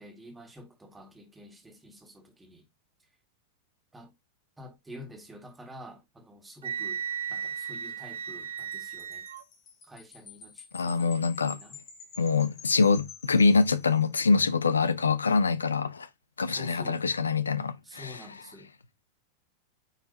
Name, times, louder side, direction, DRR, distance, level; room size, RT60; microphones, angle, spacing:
voice 1, 0.0-2.7 3.9-4.1 4.6-7.0 7.3-9.3 9.9-11.8 16.5-17.0 17.8-18.7, left 1 dB, 10° right, 1.9 m, -48 dB
Wind instrument woodwind instrument, 6.6-9.4, right 7 dB, 65° right, 0.5 m, -35 dB
Wind chime, 8.6-14.3, left 5 dB, 30° left, 2.5 m, -50 dB
voice 2, 10.7-11.6 12.2-16.1 16.4-18.2, left 4 dB, 75° left, 0.6 m, -25 dB
9.2 x 4.2 x 2.8 m
figure-of-eight pair, 90°, 0 cm